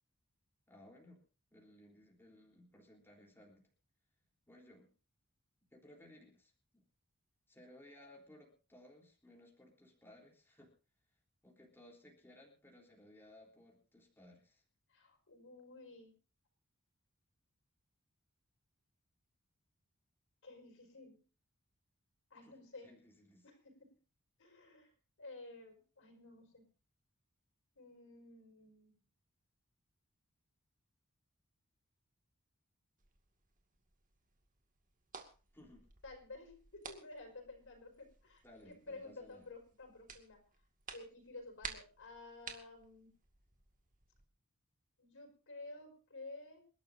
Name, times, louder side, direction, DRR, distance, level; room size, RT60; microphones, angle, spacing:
voice 1, 0.7-1.2 1.5-3.7 4.5-4.9 5.7-6.8 7.5-10.7 11.4-14.6 22.4-22.6 22.8-23.4 35.5-35.9 38.4-39.4, left 1 dB, 10° left, -1 dB, 3.7 m, -60 dB
voice 2, 14.9-16.2 20.4-21.2 22.3-22.9 23.4-24.0 24.4-24.9 25.2-26.7 27.8-28.9 36.0-40.4 40.9-43.1 45.0-46.6, left 2 dB, 65° left, 3 dB, 5.3 m, -53 dB
sound 1, 33.0-44.3, right 6 dB, 40° right, 2.2 m, -54 dB
28.0 x 12.5 x 2.7 m, 0.35 s
head